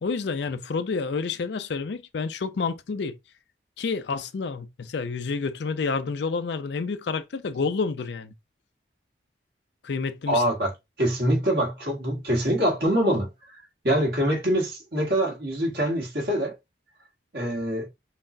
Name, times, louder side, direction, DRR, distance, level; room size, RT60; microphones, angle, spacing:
voice 1, 0.0-3.2 3.8-8.3 9.8-10.4, left 4 dB, 70° left, 0.4 m, -29 dB
voice 2, 10.3-13.3 13.8-16.5 17.3-17.9, equal, 60° right, 1.5 m, -24 dB
5.7 x 2.1 x 2.5 m
head